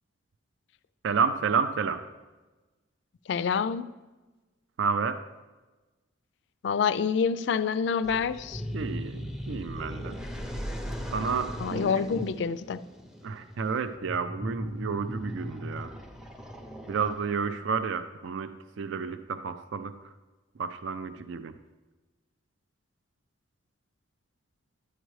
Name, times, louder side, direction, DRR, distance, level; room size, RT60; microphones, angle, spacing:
voice 1, 1.0-2.0 4.8-5.2 8.7-10.2 11.1-11.9 13.2-15.9 16.9-19.9 20.6-21.5, right 5 dB, 70° right, 11 dB, 0.4 m, -30 dB
voice 2, 3.3-3.9 6.6-8.6 11.6-12.8, left 6 dB, 65° left, 15 dB, 0.3 m, -27 dB
sound 1, 8.0-17.5, equal, 5° right, 0.5 m, -38 dB
11.0 x 8.9 x 3.1 m, 1.2 s
head